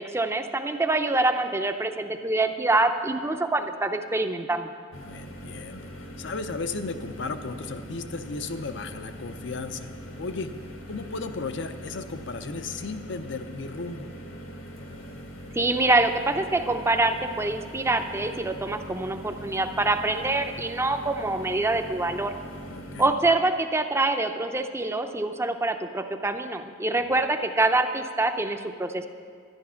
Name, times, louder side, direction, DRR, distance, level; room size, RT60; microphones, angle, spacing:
voice 1, 0.0-4.7 15.5-22.3 23.0-29.1, right 2 dB, 15° right, 7 dB, 0.5 m, -25 dB
sound 1, 4.9-23.1, equal, 85° left, 1.6 m, -41 dB
voice 2, 5.0-5.9 6.2-9.9 10.2-10.5 10.9-14.1 22.7-23.2, left 3 dB, 65° left, 9 dB, 0.6 m, -35 dB
11.0 x 10.5 x 5.7 m, 2.1 s
head